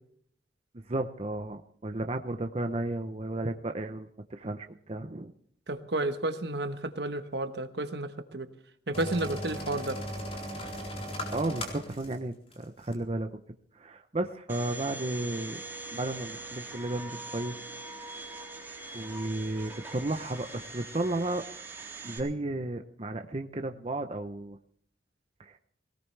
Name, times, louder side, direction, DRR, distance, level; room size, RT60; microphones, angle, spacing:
voice 1, 0.7-5.3 11.3-13.4 13.7-15.6 15.9-17.6 18.9-21.4 22.0-24.6 25.4-25.6, right 2 dB, 35° right, 6 dB, 0.7 m, -33 dB
voice 2, 5.7-8.5 8.9-10.0, right 2 dB, 65° right, 9 dB, 1.2 m, -32 dB
sound 1, 8.9-12.2 12.5-12.6 12.9-13.0, equal, 35° left, 4.1 m, -37 dB
Domestic sounds home sounds, 14.5-22.2, right 2 dB, 15° right, 3.6 m, -42 dB
20.0 x 18.5 x 3.3 m, 0.64 s
head